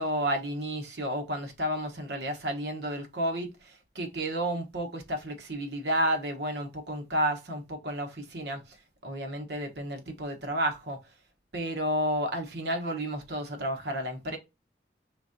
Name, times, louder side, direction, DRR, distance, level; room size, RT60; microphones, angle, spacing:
voice 1, 0.0-8.8 9.0-11.0 11.5-14.4, equal, 70° right, 1.1 m, -31 dB
5.0 x 3.6 x 2.7 m
head